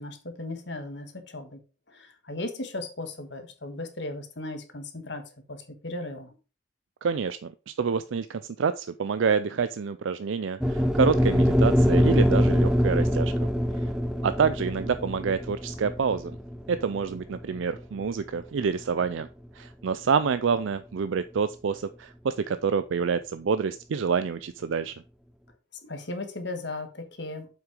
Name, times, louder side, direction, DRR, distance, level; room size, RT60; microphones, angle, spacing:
voice 1, 0.0-1.6 1.9-5.2 5.5-6.3 25.8-27.5, left 2 dB, 60° left, 6 dB, 1.6 m, -36 dB
voice 2, 7.0-13.9 14.2-16.4 16.7-19.3 19.5-24.9, right 6 dB, 70° right, 13 dB, 0.4 m, -27 dB
sound 1, 10.6-18.8, equal, 5° right, 0.5 m, -24 dB
7.6 x 5.9 x 5.0 m, 0.34 s
head